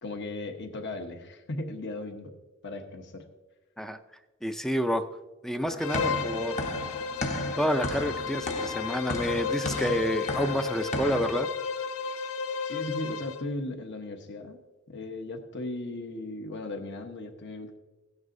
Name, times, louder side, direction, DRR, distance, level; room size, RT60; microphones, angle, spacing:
voice 1, 0.0-2.3 2.6-3.3 12.6-14.6 14.9-17.8, left 2 dB, 55° left, 4 dB, 1.1 m, -37 dB
voice 2, 4.4-5.1 5.4-6.7 7.6-11.5, equal, ahead, 8 dB, 0.4 m, -29 dB
sound 1, 5.6-11.5, left 2 dB, 35° left, 0.9 m, -35 dB
Bowed string instrument, 5.8-13.5, left 5 dB, 75° left, 0.6 m, -33 dB
16.5 x 9.5 x 2.6 m, 1.2 s
head